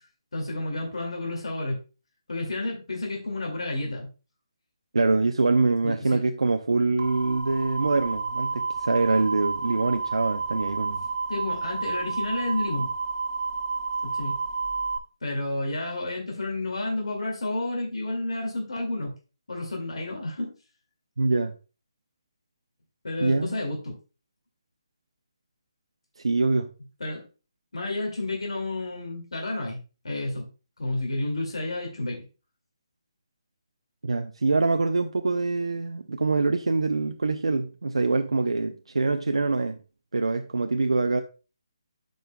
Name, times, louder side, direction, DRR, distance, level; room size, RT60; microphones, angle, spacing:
voice 1, 0.3-1.8 2.3-4.1 5.8-6.2 11.3-12.9 14.0-14.3 15.2-19.1 19.5-20.5 23.0-24.0 27.0-27.3 27.7-29.8 30.0-30.5 30.8-32.2, left 2 dB, 80° left, 2.3 m, -30 dB
voice 2, 4.9-11.0 21.2-21.5 23.2-23.6 26.2-26.7 34.0-39.8 40.1-41.2, right 3 dB, 90° right, 0.6 m, -24 dB
sound 1, 7.0-15.0, right 4 dB, 65° right, 1.3 m, -30 dB
11.0 x 5.4 x 2.3 m
hypercardioid pair, 160°, 3 cm